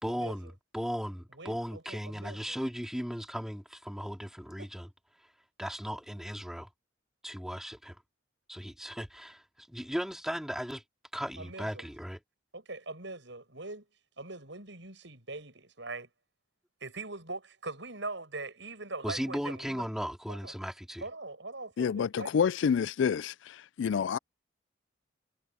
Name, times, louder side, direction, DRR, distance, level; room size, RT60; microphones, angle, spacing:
voice 1, 0.0-4.9 5.6-6.7 7.2-8.0 8.5-10.8 11.1-12.2 19.0-21.0, equal, ahead, 2.4 m, -37 dB
voice 2, 1.3-2.6 4.6-4.7 11.4-11.9 12.5-13.9 14.2-16.1 16.8-19.9 20.3-20.5 21.0-22.3, right 3 dB, 70° right, 7.1 m, -42 dB
voice 3, 21.8-24.2, left 7 dB, 75° left, 0.3 m, -28 dB
head